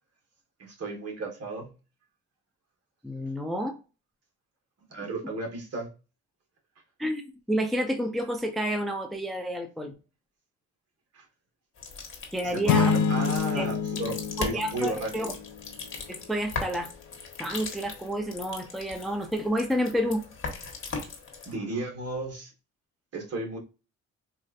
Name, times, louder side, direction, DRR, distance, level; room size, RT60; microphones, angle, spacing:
voice 1, 0.6-1.7 4.9-5.9 11.1-11.2 12.4-15.3 21.5-22.5 23.1-23.6, right 3 dB, 55° right, 1.5 m, -34 dB
voice 2, 3.0-3.8 7.0-7.2 7.5-9.9 12.3-12.9 13.5-13.7 14.4-15.3 16.1-16.9 17.4-20.2, equal, ahead, 0.5 m, -29 dB
sound 1, 11.8-21.5, left 4 dB, 45° left, 1.2 m, -39 dB
sound 2, 12.7-15.5, left 6 dB, 65° left, 0.4 m, -26 dB
4.2 x 2.5 x 2.4 m
cardioid pair, 90°, 30 cm